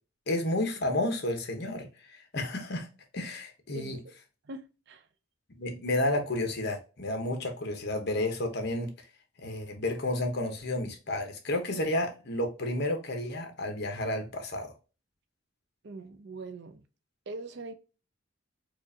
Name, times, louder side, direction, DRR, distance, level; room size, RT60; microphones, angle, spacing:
voice 1, 0.3-2.9 3.1-4.0 5.5-8.9 9.4-14.7, left 1 dB, 55° left, 1.0 m, -31 dB
voice 2, 3.7-4.1 4.5-5.0 15.8-16.8 17.3-17.7, right 2 dB, 55° right, 0.5 m, -42 dB
4.7 x 2.4 x 2.7 m
head